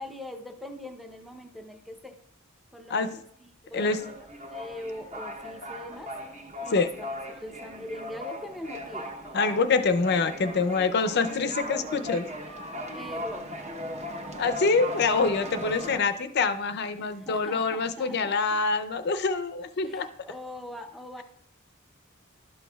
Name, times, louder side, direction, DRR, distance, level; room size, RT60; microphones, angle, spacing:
voice 1, 0.0-2.2 2.7-3.2 3.6-4.2 4.5-9.1 12.9-13.7 17.0-18.6 19.8-21.2, left 1 dB, ahead, 5 dB, 0.6 m, -42 dB
sound 1, 3.7-16.0, equal, 30° right, 0.8 m, -38 dB
voice 2, 9.3-12.3 14.4-20.1, left 4 dB, 50° left, 9 dB, 0.5 m, -25 dB
12.5 x 6.2 x 2.3 m, 0.68 s
head